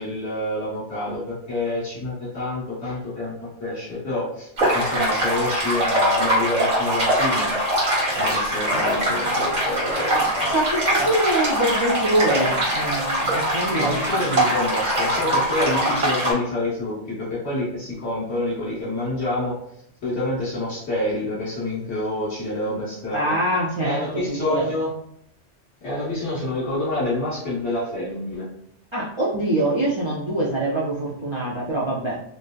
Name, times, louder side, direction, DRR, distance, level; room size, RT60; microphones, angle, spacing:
voice 1, 0.0-3.3 3.6-7.5 8.1-10.6 11.0-11.1 13.7-19.5 20.0-23.3 23.8-24.9 25.8-28.4, left 1 dB, 75° left, -8 dB, 1.5 m, -27 dB
sound 1, 4.6-16.3, right 1 dB, 85° right, 1.6 m, -22 dB
voice 2, 10.1-14.0 23.1-24.7 28.9-32.2, right 1 dB, 40° right, -6 dB, 0.4 m, -24 dB
3.4 x 2.6 x 2.3 m, 0.70 s
omnidirectional pair, 1.2 m